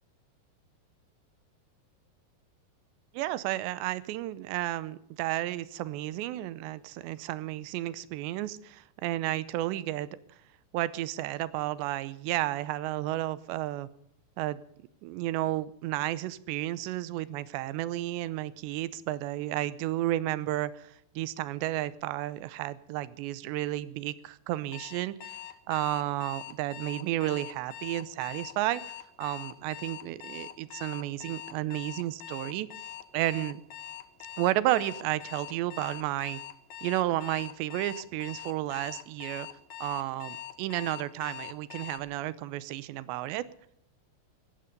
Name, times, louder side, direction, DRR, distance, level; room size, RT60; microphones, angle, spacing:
voice 1, 3.1-10.1 10.7-13.9 14.4-14.6 15.0-25.4 25.7-28.8 29.2-32.7 33.1-33.6 34.4-36.4 36.8-39.5 39.8-43.4, right 15 dB, 85° right, 16 dB, 3.0 m, -32 dB
Alarm, 24.7-42.0, left 11 dB, 70° left, 1.8 m, -43 dB
17.0 x 15.5 x 5.2 m, 0.72 s
omnidirectional pair, 4.9 m